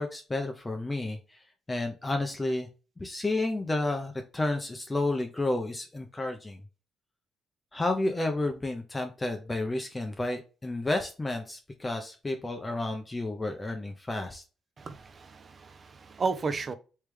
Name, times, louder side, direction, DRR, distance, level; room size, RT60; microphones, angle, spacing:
voice 1, 0.0-1.4 1.7-2.7 3.0-6.6 7.7-14.4, left 2 dB, 20° left, 0.6 m, -31 dB
voice 2, 14.8-16.7, right 4 dB, 40° right, 0.6 m, -33 dB
3.2 x 3.2 x 3.3 m
cardioid pair, 90°, 0 cm